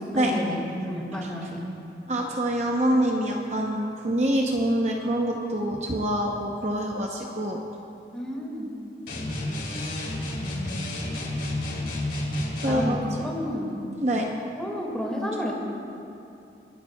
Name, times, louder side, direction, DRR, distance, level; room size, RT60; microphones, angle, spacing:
voice 1, 0.1-0.6 0.9-1.6 8.1-8.8 12.7-13.8 14.6-15.5, equal, 5° left, -3 dB, 2.0 m, -31 dB
voice 2, 2.1-7.6 12.6-13.0 13.5-13.6 14.0-14.3, right 1 dB, 40° right, 0 dB, 0.8 m, -25 dB
sound 1, 9.1-12.9, left 1 dB, 80° left, 3.2 m, -30 dB
27.5 x 11.5 x 2.3 m, 2.7 s
head